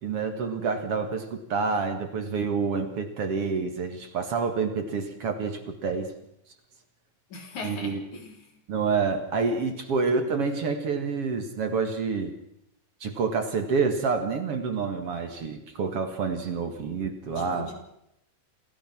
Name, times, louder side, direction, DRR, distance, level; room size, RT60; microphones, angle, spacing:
voice 1, 0.0-6.1 7.6-8.0 8.7-12.4 13.0-17.7, right 5 dB, 50° right, 7 dB, 2.6 m, -28 dB
voice 2, 7.3-8.5 17.4-17.7, left 3 dB, 70° left, 3 dB, 5.2 m, -40 dB
27.5 x 16.0 x 6.1 m, 0.78 s
omnidirectional pair, 3.6 m